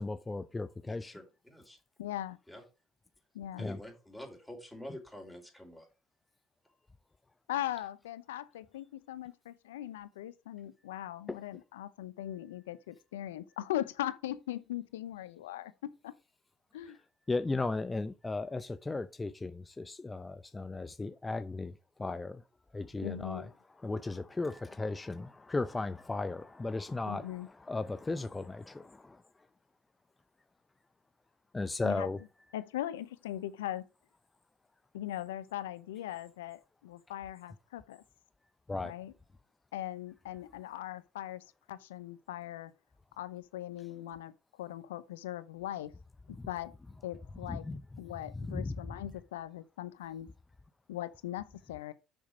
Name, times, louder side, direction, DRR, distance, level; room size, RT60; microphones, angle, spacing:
voice 1, 0.0-1.2 3.6-3.8 11.3-11.4 17.3-21.7 22.0-22.4 22.7-23.5 23.8-29.2 31.5-32.2 38.7-38.9 46.4-46.5 47.5-47.8 48.3-48.8, left 3 dB, 20° left, 0.6 m, -36 dB
voice 2, 0.9-1.8 2.5-2.6 3.6-5.9, equal, 5° left, 4.3 m, -47 dB
voice 3, 2.0-2.4 3.3-3.7 7.5-15.7 16.0-16.1 16.7-17.0 23.0-23.5 27.1-27.5 31.8-32.1 32.5-33.8 34.9-38.0 38.8-39.1 39.7-42.7 43.2-44.3 44.6-45.9 46.3-46.7 47.0-47.6 48.0-50.3 50.9-51.9, left 13 dB, 85° left, 0.6 m, -40 dB
6.5 x 6.1 x 5.1 m
hypercardioid pair, 60°, 0 cm